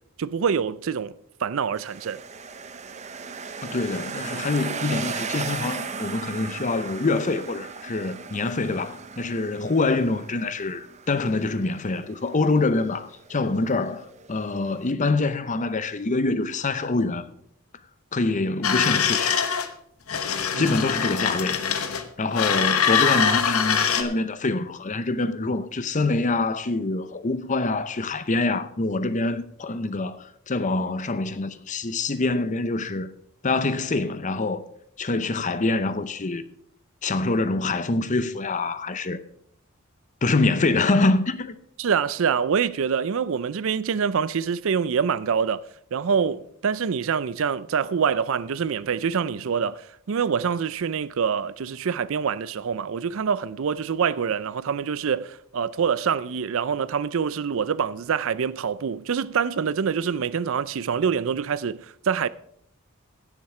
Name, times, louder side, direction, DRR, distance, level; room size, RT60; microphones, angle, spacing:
voice 1, 0.2-1.1 1.4-2.2 20.5-20.7 41.8-45.6 45.9-62.3, right 6 dB, 65° right, 0.4 m, -25 dB
sound 1, 1.8-14.9, right 5 dB, 30° right, 0.7 m, -37 dB
voice 2, 3.6-17.3 18.1-19.4 20.6-21.6 22.2-33.1 33.4-34.6 35.0-36.4 37.0-39.2 40.2-41.6, left 3 dB, 35° left, 0.7 m, -25 dB
sound 2, 18.6-19.7 20.1-22.0 22.3-24.0, left 7 dB, 80° left, 1.0 m, -23 dB
16.0 x 7.3 x 4.8 m
head